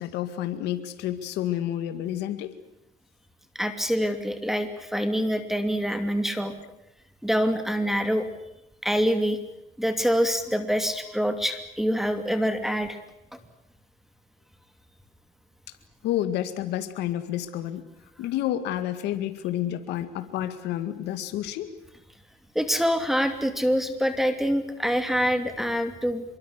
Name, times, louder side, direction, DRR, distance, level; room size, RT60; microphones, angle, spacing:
voice 1, 0.0-2.5 4.0-4.1 16.0-17.9 18.2-21.7 26.1-26.2, left 12 dB, 85° left, 10 dB, 2.1 m, -30 dB
voice 2, 3.5-6.5 7.2-8.3 8.8-9.4 9.8-13.0 22.5-26.2, equal, ahead, 9 dB, 2.7 m, -25 dB
25.5 x 23.5 x 8.2 m, 0.85 s
cardioid pair, 110°, 17 cm